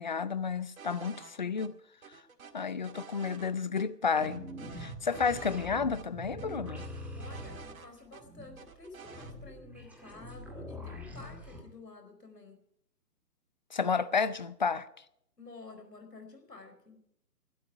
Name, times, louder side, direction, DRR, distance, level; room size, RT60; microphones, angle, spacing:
voice 1, 0.0-1.7 2.5-4.5 4.8-6.9 13.7-14.9, left 5 dB, 30° left, 0.6 m, -31 dB
sound 1, 0.8-1.3 1.6-1.7 2.0-3.5 3.8-3.9 4.2-5.7 5.9-6.0 6.4-8.2 8.6-9.3, right 6 dB, 60° right, 2.0 m, -50 dB
sound 2, 4.2-11.6, equal, 5° right, 2.2 m, -44 dB
voice 2, 7.1-12.6 15.4-17.0, left 3 dB, 75° left, 4.7 m, -51 dB
20.0 x 12.5 x 4.7 m
figure-of-eight pair, 140°, 48 cm